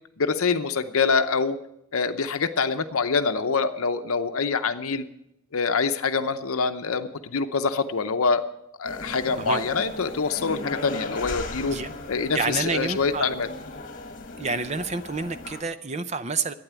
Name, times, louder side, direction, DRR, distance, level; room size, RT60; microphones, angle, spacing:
voice 1, 0.2-1.6 1.9-5.1 5.5-8.4 8.8-11.8 12.1-13.5, left 5 dB, 75° left, 9 dB, 0.7 m, -25 dB
sound 1, 8.8-15.6, left 2 dB, 40° left, 1.5 m, -37 dB
voice 2, 12.3-13.3 14.4-16.5, right 4 dB, 30° right, 12 dB, 0.6 m, -28 dB
12.5 x 9.3 x 8.2 m, 0.80 s
head